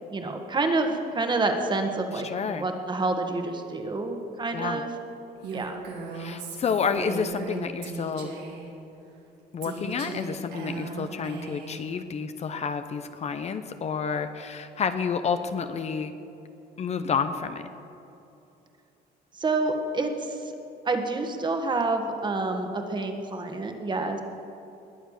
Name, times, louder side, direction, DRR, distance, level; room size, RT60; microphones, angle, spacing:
voice 1, 0.1-4.9 5.5-5.8 19.3-20.5 20.8-24.2, right 3 dB, 25° right, 5 dB, 1.7 m, -28 dB
voice 2, 2.2-2.6 4.5-4.8 6.1-8.3 9.5-16.1 16.8-17.6, left 6 dB, 40° left, 9 dB, 0.8 m, -29 dB
Female speech woman speaking, 5.4-8.7 9.6-11.8, right 4 dB, 75° right, 2.5 m, -37 dB
20.5 x 7.9 x 6.6 m, 3.0 s
cardioid pair, 110°, 17 cm